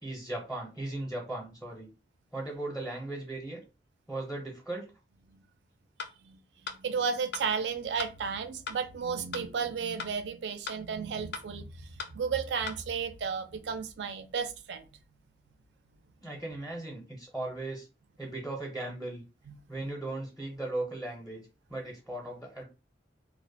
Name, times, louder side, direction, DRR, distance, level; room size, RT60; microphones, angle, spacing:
voice 1, 0.0-1.9 2.3-3.6 4.1-4.9 16.2-17.9 18.2-19.2 19.7-22.6, right 2 dB, ahead, 0.5 m, -37 dB
sound 1, 6.0-6.1 6.7-6.8 7.3-7.4 8.0-8.1 8.7-8.8 9.3-9.4 10.0-10.1 10.7-10.8 11.3-11.4 12.0-12.1 12.7-12.8, left 5 dB, 65° left, 0.4 m, -38 dB
voice 2, 6.2-14.9 19.5-19.6, right 6 dB, 70° right, 0.4 m, -33 dB
2.4 x 2.1 x 2.5 m
head